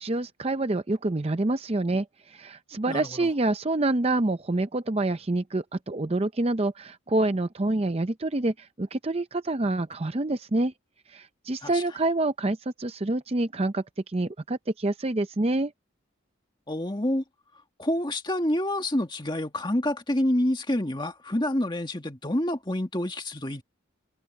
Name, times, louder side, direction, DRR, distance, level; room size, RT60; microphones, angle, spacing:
voice 1, 0.0-10.7 11.1-15.7, right 2 dB, 30° right, 0.6 m, -27 dB
voice 2, 2.9-3.3 11.6-11.8 16.7-17.2 17.8-23.6, left 1 dB, 20° left, 1.9 m, -27 dB
head